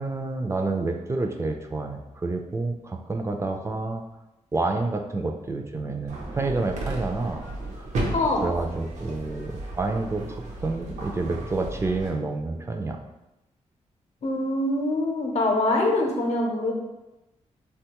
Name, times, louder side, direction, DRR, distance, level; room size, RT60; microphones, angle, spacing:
voice 1, 0.0-4.0 4.5-7.4 7.8-8.0 8.4-13.0, right 3 dB, 25° right, 4 dB, 0.3 m, -29 dB
sound 1, 6.1-12.1, right 2 dB, 80° right, 0.6 m, -34 dB
voice 2, 8.1-8.4 14.2-16.7, left 2 dB, 65° left, 0 dB, 0.7 m, -24 dB
3.3 x 2.2 x 2.9 m, 0.96 s
cardioid pair, 85°, 12 cm